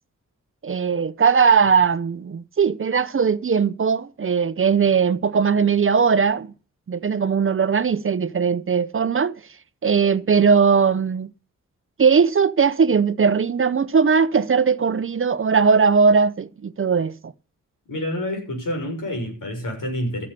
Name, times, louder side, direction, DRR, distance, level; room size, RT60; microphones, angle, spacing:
voice 1, 0.6-6.5 6.9-9.3 9.8-11.3 12.0-17.1, right 6 dB, 40° right, 0.7 m, -19 dB
voice 2, 17.9-20.3, left 1 dB, 80° left, 6.7 m, -28 dB
14.0 x 8.5 x 6.8 m
cardioid pair, 70°, 32 cm